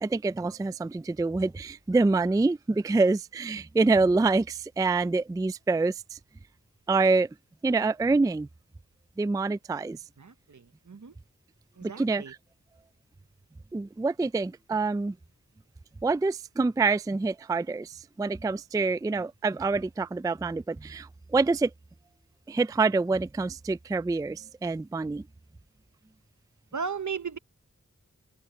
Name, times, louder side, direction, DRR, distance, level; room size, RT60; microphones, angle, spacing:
voice 1, 0.0-6.2 6.9-7.3 7.6-8.5 9.2-10.0 11.8-12.4 13.7-15.1 16.0-21.7 22.5-25.3, right 3 dB, 10° right, 0.3 m, -26 dB
voice 2, 10.2-11.1 11.8-12.3 26.7-27.4, right 6 dB, 65° right, 1.0 m, -36 dB
wide cardioid pair, 55°, 31 cm